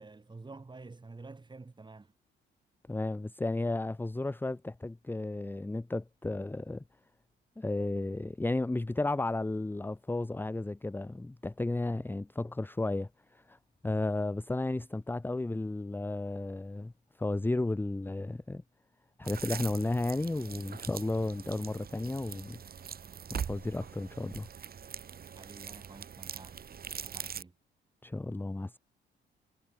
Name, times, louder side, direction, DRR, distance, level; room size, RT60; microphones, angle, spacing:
voice 1, 0.0-2.1 25.4-26.6 27.0-27.5, right 3 dB, 20° right, 5.3 m, -49 dB
voice 2, 2.9-6.8 7.6-13.6 13.8-16.9 17.2-18.6 19.2-22.6 23.3-24.5 28.0-28.8, left 2 dB, 10° left, 0.9 m, -33 dB
sound 1, 19.2-27.4, right 7 dB, 50° right, 2.9 m, -42 dB
cardioid pair, 90°, 20 cm